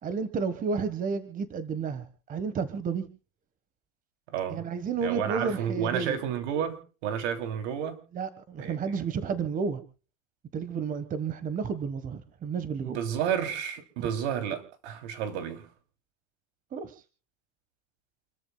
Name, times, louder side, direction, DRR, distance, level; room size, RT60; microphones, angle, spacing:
voice 1, 0.0-3.1 4.5-6.2 8.1-9.8 10.5-13.0 14.0-14.1 16.7-17.0, right 5 dB, 20° right, 1.5 m, -31 dB
voice 2, 4.3-4.6 5.0-8.0 8.6-8.8 9.2-9.4 12.8-15.7, right 8 dB, 70° right, 3.4 m, -31 dB
29.0 x 13.5 x 2.3 m
supercardioid pair, 150°, 36 cm